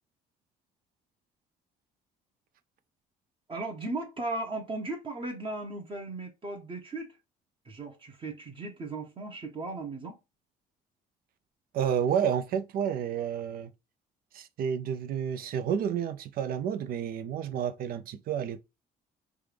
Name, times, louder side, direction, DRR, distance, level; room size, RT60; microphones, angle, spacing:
voice 1, 3.5-7.1 7.6-10.2, right 2 dB, 30° right, 0.9 m, -36 dB
voice 2, 11.7-13.7 14.3-18.6, right 8 dB, 60° right, 0.4 m, -30 dB
3.4 x 2.4 x 3.3 m
cardioid pair, 110°, 17 cm